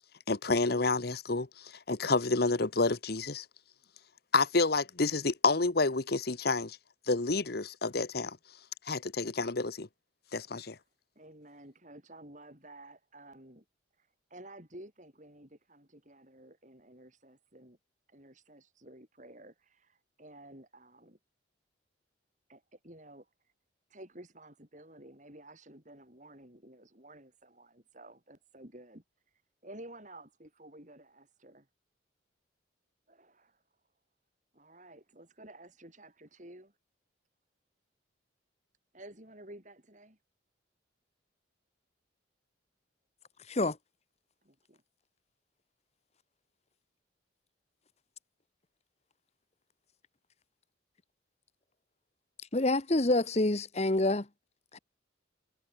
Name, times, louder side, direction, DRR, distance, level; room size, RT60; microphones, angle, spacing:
voice 1, 0.3-3.4 4.3-6.8 7.1-8.4 8.9-9.9 10.3-10.8, left 3 dB, 55° left, 1.1 m, -29 dB
voice 2, 11.2-13.6 14.0-17.8 18.1-21.2 22.5-23.3 23.9-29.0 29.6-31.7 33.1-33.6 34.5-36.7 38.9-40.2 44.4-44.8, right 1 dB, 40° right, 7.4 m, -52 dB
voice 3, 52.5-54.3 54.7-54.8, left 2 dB, 35° left, 1.1 m, -27 dB
head